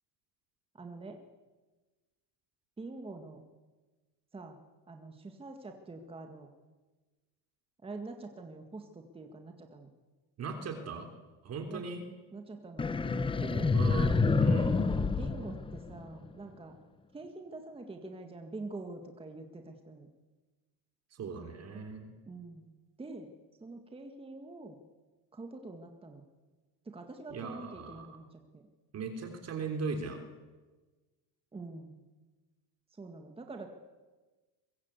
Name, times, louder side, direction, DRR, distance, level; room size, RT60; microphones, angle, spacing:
voice 1, 0.7-1.2 2.8-3.4 4.3-4.6 4.9-6.5 7.8-9.9 11.7-11.8 12.3-12.9 13.4-13.7 14.7-16.8 17.1-20.1 22.3-22.7 23.0-24.8 25.3-26.2 26.9-28.7 31.5-32.0 32.9-33.7, right 3 dB, 10° right, 4 dB, 1.8 m, -45 dB
voice 2, 10.4-11.1 11.4-12.0 13.7-14.8 21.1-22.1 27.3-28.2 28.9-30.2, right 4 dB, 30° right, 5 dB, 3.5 m, -38 dB
sound 1, 12.8-16.3, left 4 dB, 10° left, 0.9 m, -28 dB
24.0 x 22.5 x 8.3 m, 1.3 s
cardioid pair, 150°, 47 cm